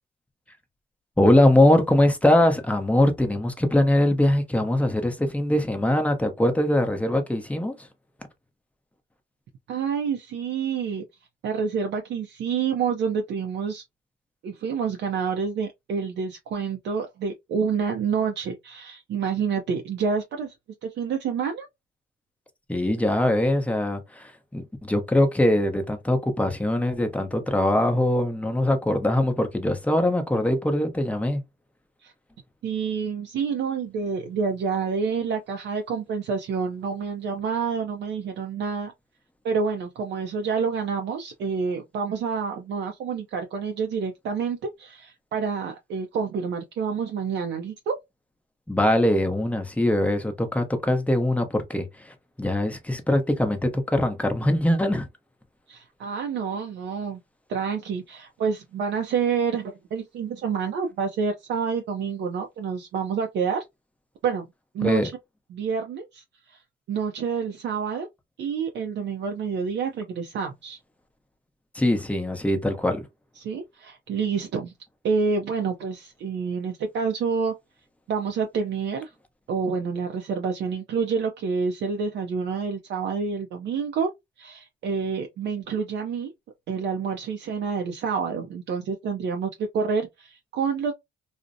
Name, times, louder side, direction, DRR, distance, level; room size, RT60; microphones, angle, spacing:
voice 1, 1.2-7.9 22.7-31.4 48.7-55.1 64.8-65.1 71.7-73.0, left 1 dB, 5° left, 0.6 m, -22 dB
voice 2, 9.7-11.0 11.4-13.8 14.4-20.5 20.8-21.7 32.0-32.1 32.6-38.9 39.4-48.0 55.7-57.2 57.5-63.6 64.2-64.5 64.7-65.1 65.5-66.6 66.9-68.1 68.4-70.8 73.4-74.7 75.0-77.5 78.1-79.1 79.5-84.1 84.4-86.3 86.7-90.9, right 6 dB, 65° right, 0.4 m, -28 dB
2.5 x 2.0 x 2.5 m
cardioid pair, 90°, 20 cm